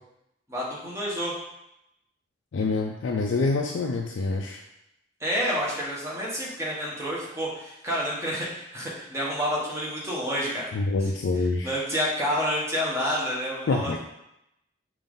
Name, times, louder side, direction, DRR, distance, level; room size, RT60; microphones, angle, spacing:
voice 1, 0.5-1.3 5.2-10.7 11.6-14.0, equal, 15° right, -6 dB, 1.1 m, -29 dB
voice 2, 2.5-4.6 10.7-11.7 13.7-14.0, left 3 dB, 70° left, 1 dB, 0.4 m, -26 dB
5.4 x 2.6 x 3.6 m, 0.84 s
head